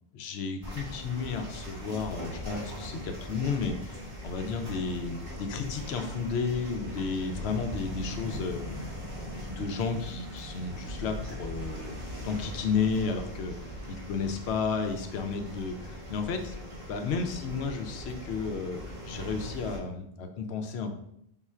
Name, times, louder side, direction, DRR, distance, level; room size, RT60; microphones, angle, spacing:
voice 1, 0.2-8.9 9.2-13.6 14.1-16.6 16.9-20.9, left 5 dB, 85° left, 6 dB, 0.8 m, -33 dB
sound 1, 0.6-19.8, equal, 65° right, 1.6 m, -40 dB
3.8 x 2.4 x 4.2 m, 0.75 s
omnidirectional pair, 1.1 m